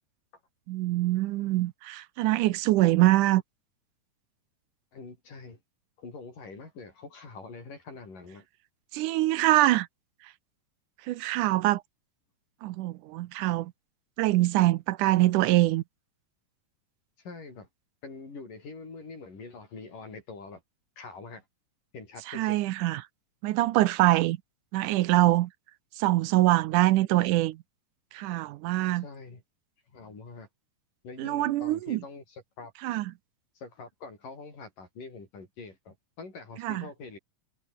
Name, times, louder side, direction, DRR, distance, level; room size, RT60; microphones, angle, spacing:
voice 1, 0.7-3.4 8.9-9.9 11.1-11.8 12.6-13.7 14.2-15.8 22.3-23.1 23.4-24.4 24.7-25.5 26.0-27.6 28.1-29.0 31.2-32.0 32.8-33.1 36.6-36.8, right 16 dB, 75° right, 2.2 m, -24 dB
voice 2, 4.9-5.6 6.0-8.5 17.2-17.7 18.0-20.6 21.0-21.5 21.9-22.6 29.0-29.4 29.9-30.5 31.0-32.7 33.6-37.2, left 4 dB, 80° left, 8.8 m, -44 dB
omnidirectional pair, 3.8 m